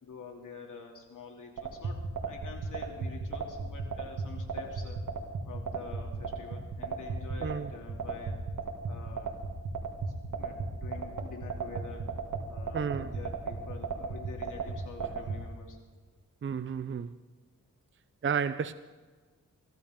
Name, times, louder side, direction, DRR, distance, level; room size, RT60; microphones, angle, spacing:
voice 1, 0.0-2.0 2.3-5.0 5.4-8.4 8.9-9.4 10.0-12.1 12.5-15.8, left 4 dB, 85° left, 2.8 m, -47 dB
sound 1, 1.6-15.4, right 5 dB, 80° right, 2.2 m, -34 dB
voice 2, 12.7-13.1 16.4-17.1 18.2-18.7, right 6 dB, 40° right, 0.5 m, -32 dB
23.5 x 14.5 x 3.7 m
cardioid pair, 75°, 30 cm